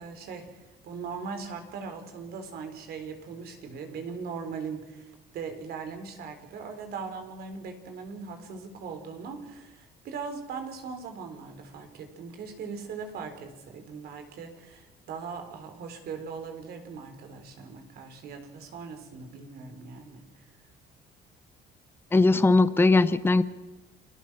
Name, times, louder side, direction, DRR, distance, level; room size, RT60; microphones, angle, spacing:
voice 1, 0.0-20.4, right 5 dB, 70° right, 7 dB, 3.9 m, -40 dB
voice 2, 22.1-23.4, left 3 dB, 15° left, 14 dB, 0.8 m, -20 dB
28.5 x 18.5 x 6.1 m, 1.1 s
cardioid pair, 110°, 17 cm